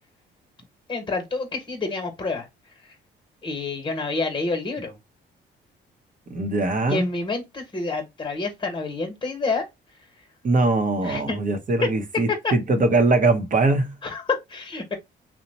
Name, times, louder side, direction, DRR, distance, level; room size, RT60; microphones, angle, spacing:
voice 1, 0.9-2.5 2.8-2.9 3.4-5.0 6.9-9.7 11.0-11.4 11.8-11.9 12.3-12.5 14.0-14.9, left 3 dB, 25° left, 1.1 m, -28 dB
voice 2, 6.3-7.1 10.4-13.9, right 2 dB, 40° right, 0.8 m, -21 dB
2.9 x 2.1 x 4.0 m
cardioid pair, 90°, 20 cm